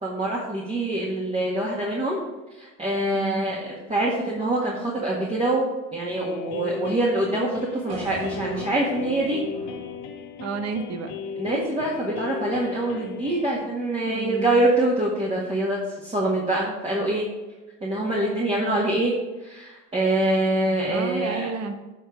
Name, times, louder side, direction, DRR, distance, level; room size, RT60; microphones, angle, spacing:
voice 1, 0.0-2.2 2.5-9.4 11.4-17.2 17.8-19.1 19.4-21.5, right 1 dB, 15° right, -4 dB, 1.8 m, -25 dB
sound 1, 6.2-13.6, left 6 dB, 75° left, 1.2 m, -36 dB
sound 2, 7.9-12.0, right 3 dB, 90° right, 1.3 m, -42 dB
voice 2, 10.4-11.1 14.0-14.7 18.5-18.8 20.9-21.7, right 5 dB, 45° right, 8 dB, 1.1 m, -31 dB
7.5 x 4.4 x 7.0 m, 1.1 s
supercardioid pair, 105°, 36 cm